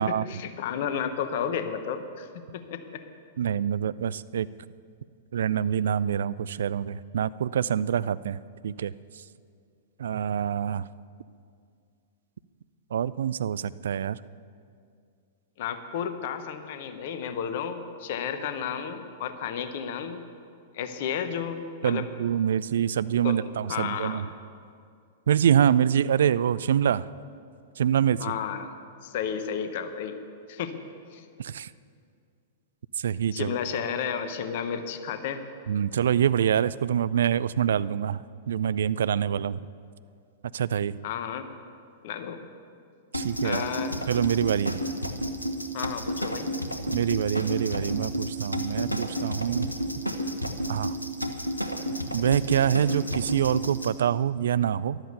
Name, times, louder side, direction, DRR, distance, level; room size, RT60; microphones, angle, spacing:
voice 1, 0.0-3.0 15.6-20.2 20.7-22.1 23.2-24.2 28.2-28.7 29.0-30.2 30.5-30.8 31.1-31.2 33.3-35.4 41.0-41.5 42.0-42.4 43.4-44.0 45.7-46.5, left 7 dB, 50° left, 10 dB, 1.0 m, -32 dB
voice 2, 3.4-4.5 5.3-8.9 10.0-10.9 12.9-14.2 21.8-24.3 25.3-27.1 27.8-28.3 31.4-31.7 33.0-33.6 35.7-39.6 40.5-41.0 43.1-43.6 44.1-44.8 46.9-49.7 50.7-51.0 52.1-55.0, right 9 dB, 60° right, 17 dB, 0.4 m, -25 dB
sound 1, 43.1-53.9, equal, 90° left, 1.1 m, -31 dB
13.5 x 11.5 x 6.8 m, 2.3 s
figure-of-eight pair, 100°, 0 cm